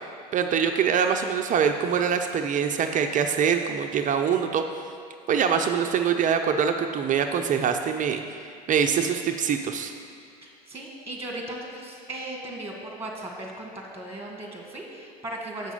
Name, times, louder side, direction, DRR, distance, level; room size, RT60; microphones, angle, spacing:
voice 1, 0.3-4.6 5.3-9.9, right 7 dB, 40° right, 6 dB, 0.6 m, -24 dB
voice 2, 10.4-15.7, right 1 dB, 10° right, 0 dB, 1.9 m, -37 dB
7.5 x 6.0 x 7.3 m, 2.3 s
hypercardioid pair, 85°, 21 cm